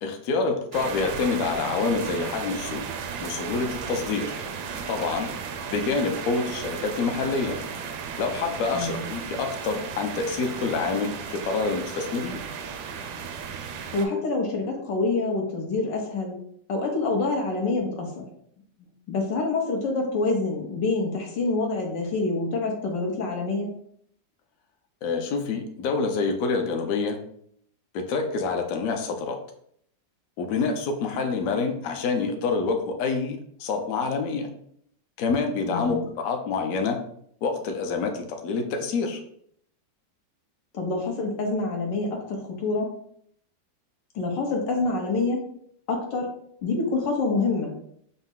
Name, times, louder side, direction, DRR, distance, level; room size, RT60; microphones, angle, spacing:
voice 1, 0.0-2.8 3.2-4.3 4.9-5.3 5.7-7.6 8.2-12.4 25.0-27.2 27.9-29.4 30.4-34.5 35.2-37.0 37.4-39.2, left 4 dB, 65° left, 4 dB, 0.9 m, -27 dB
sound 1, 0.7-14.1, right 6 dB, 75° right, 1.1 m, -35 dB
voice 2, 8.7-9.0 13.9-16.3 16.7-18.3 19.1-23.7 35.7-36.0 40.7-42.9 44.1-45.4 45.9-46.3 46.6-47.9, left 3 dB, 90° left, 1 dB, 1.6 m, -26 dB
5.5 x 2.0 x 3.7 m, 0.67 s
omnidirectional pair, 1.9 m